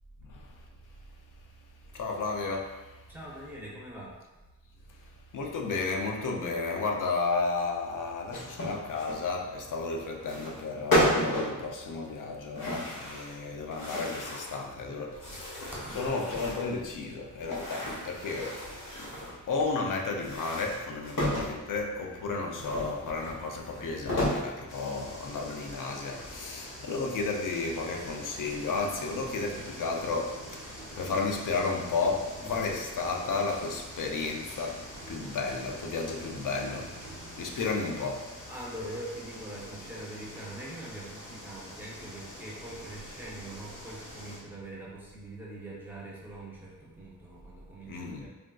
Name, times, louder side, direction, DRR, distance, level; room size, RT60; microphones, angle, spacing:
voice 1, 0.3-0.6 1.9-3.0 4.9-18.7 19.0-19.2 19.5-37.0 37.4-38.3 47.9-48.3, left 3 dB, 70° left, 2 dB, 0.5 m, -33 dB
voice 2, 3.1-4.2 15.7-16.1 32.4-32.7 38.5-48.3, right 1 dB, 5° right, -6 dB, 0.6 m, -43 dB
sound 1, 8.3-9.2 10.2-10.6 10.9-11.6 12.5-13.4 13.7-14.6 15.1-16.7 17.4-19.4 20.1-21.6 22.6-24.5 25.0-25.1 25.6-26.4, equal, 85° left, 0.9 m, -32 dB
sound 2, 24.7-44.4, equal, 40° left, 0.9 m, -46 dB
sound 3, 27.5-37.8, right 3 dB, 80° right, 0.6 m, -49 dB
3.3 x 2.5 x 2.2 m, 1.1 s
wide cardioid pair, 150°, 33 cm